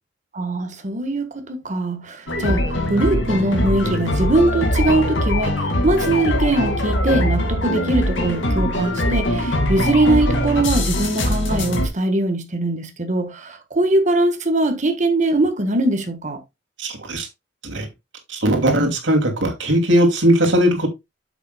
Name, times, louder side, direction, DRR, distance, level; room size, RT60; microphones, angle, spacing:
voice 1, 0.3-16.4, right 2 dB, 40° right, 1.4 m, -21 dB
sound 1, 2.3-11.9, left 1 dB, 85° left, 2.2 m, -21 dB
voice 2, 16.8-17.3 17.6-17.9 18.3-20.9, equal, 80° right, 2.6 m, -18 dB
8.4 x 7.3 x 2.3 m
head